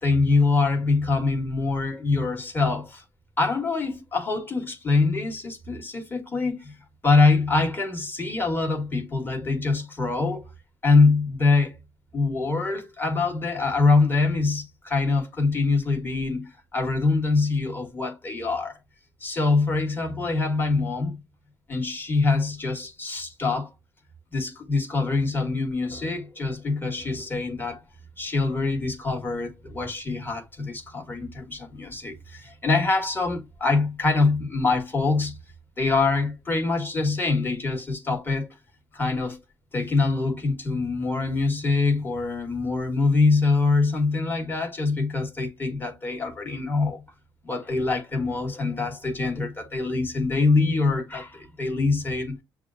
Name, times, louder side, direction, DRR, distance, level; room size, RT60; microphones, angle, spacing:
voice 1, 0.0-3.0 3.4-6.7 7.0-10.5 10.8-11.8 12.1-18.8 19.2-21.2 21.7-23.7 24.3-27.8 28.2-35.4 35.8-38.5 38.9-39.4 39.7-47.0 47.4-52.4, left 3 dB, 25° left, 1.5 m, -24 dB
6.7 x 2.4 x 2.5 m
cardioid pair, 120°, 9 cm